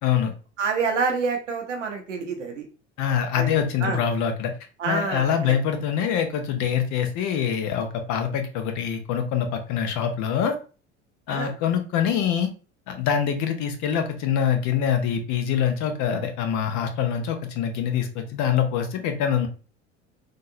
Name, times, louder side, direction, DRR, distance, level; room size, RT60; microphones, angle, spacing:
voice 1, 0.0-0.3 3.0-4.5 4.8-10.6 11.3-12.5 12.9-19.5, left 8 dB, 55° left, 7 dB, 0.9 m, -24 dB
voice 2, 0.6-2.6 3.3-3.5 3.8-4.0 4.8-5.5 11.3-11.5, right 4 dB, 90° right, 2 dB, 0.9 m, -27 dB
3.8 x 2.5 x 2.6 m, 0.35 s
hypercardioid pair, 75°, 35 cm